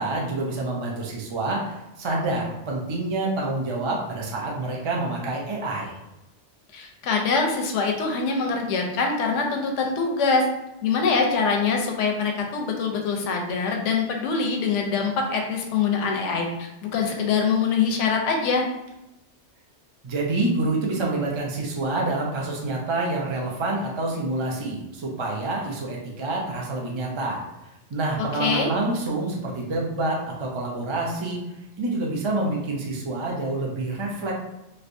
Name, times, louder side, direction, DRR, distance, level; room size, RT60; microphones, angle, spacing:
voice 1, 0.0-5.9 20.0-27.4 27.9-31.4 31.8-34.3, right 2 dB, 40° right, -2 dB, 0.4 m, -27 dB
voice 2, 6.7-10.4 10.8-18.7 28.4-28.7, left 5 dB, 80° left, 2 dB, 0.9 m, -24 dB
3.3 x 2.6 x 2.5 m, 0.94 s
omnidirectional pair, 1.3 m